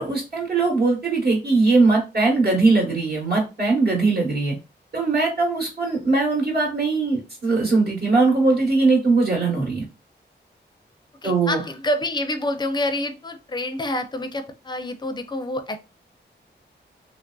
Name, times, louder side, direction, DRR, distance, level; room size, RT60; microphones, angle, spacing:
voice 1, 0.0-4.5 4.9-9.8 11.2-11.6, right 3 dB, 60° right, -3 dB, 1.0 m, -20 dB
voice 2, 11.2-15.9, left 1 dB, 25° left, 8 dB, 0.4 m, -27 dB
3.1 x 2.6 x 2.3 m, 0.29 s
wide cardioid pair, 140°, 19 cm